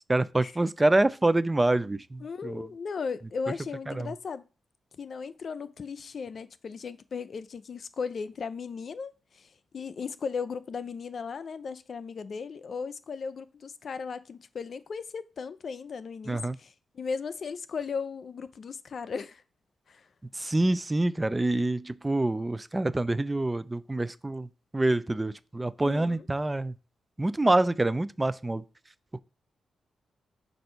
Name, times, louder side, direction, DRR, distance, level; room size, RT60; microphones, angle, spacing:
voice 1, 0.1-2.7 4.0-4.1 16.3-16.6 20.4-24.5 24.7-26.7 27.2-28.6, right 2 dB, 20° right, 0.4 m, -26 dB
voice 2, 2.2-4.4 5.0-19.4 19.9-20.1 25.8-26.3, left 5 dB, 55° left, 0.5 m, -36 dB
7.6 x 2.6 x 5.5 m
cardioid pair, 60°, 0 cm